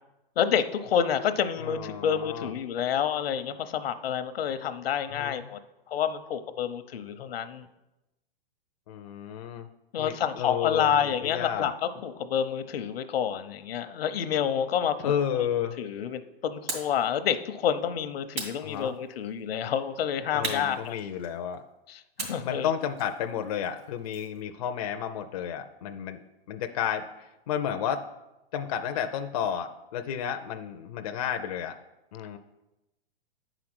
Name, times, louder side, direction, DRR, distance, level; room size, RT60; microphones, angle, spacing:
voice 1, 0.4-5.6 5.9-7.7 9.9-15.1 15.4-15.5 15.8-21.0 21.9-22.7, left 8 dB, 75° left, 10 dB, 0.8 m, -28 dB
voice 2, 1.6-2.5 5.1-5.4 8.9-9.7 10.0-11.7 15.0-15.8 18.6-19.0 20.3-21.6 22.4-26.2 26.5-28.1 28.5-31.8 32.1-32.4, left 9 dB, 40° left, 6 dB, 0.4 m, -32 dB
sound 1, 16.7-17.0 18.3-19.3 20.4-21.5 22.2-24.4, right 3 dB, 75° right, 3.0 m, -38 dB
9.2 x 5.0 x 6.0 m, 0.96 s
hypercardioid pair, 160°, 30 cm